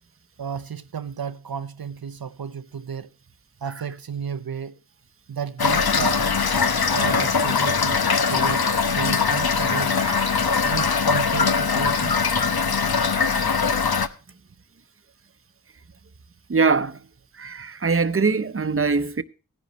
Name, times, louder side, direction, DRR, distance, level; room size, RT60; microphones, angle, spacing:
voice 1, 0.4-3.1 3.6-4.8 5.3-6.2 6.9-8.0 8.3-10.0 10.6-12.1, right 7 dB, 75° right, 0.7 m, -32 dB
Toilet flush / Fill (with liquid), 5.6-14.1, left 5 dB, 85° left, 0.9 m, -21 dB
voice 2, 10.0-10.4 13.1-13.5 16.5-17.0 17.4-19.2, right 4 dB, 35° right, 0.8 m, -23 dB
17.0 x 10.5 x 3.0 m
wide cardioid pair, 45°, 36 cm